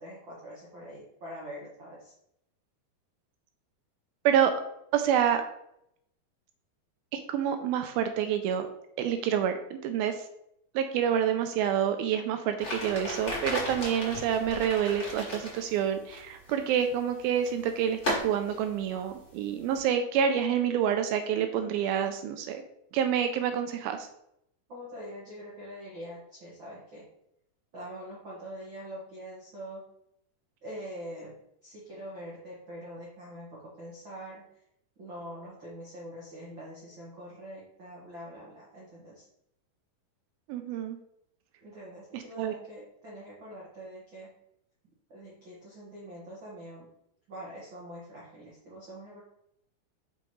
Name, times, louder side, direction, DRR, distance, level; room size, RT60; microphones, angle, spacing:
voice 1, 0.0-2.1 24.7-27.1 27.7-29.8 30.6-31.3 31.6-34.5 35.0-39.3 41.6-44.3 45.1-46.9 47.3-49.2, equal, 65° right, -7 dB, 1.2 m, -44 dB
voice 2, 4.9-5.4 7.1-8.7 9.0-10.2 10.8-22.6 22.9-24.1 40.5-41.0 42.1-42.5, right 9 dB, 80° right, 7 dB, 2.3 m, -28 dB
sound 1, 12.6-19.8, left 1 dB, 60° left, 0.5 m, -37 dB
5.7 x 5.3 x 3.1 m, 0.76 s
omnidirectional pair, 4.4 m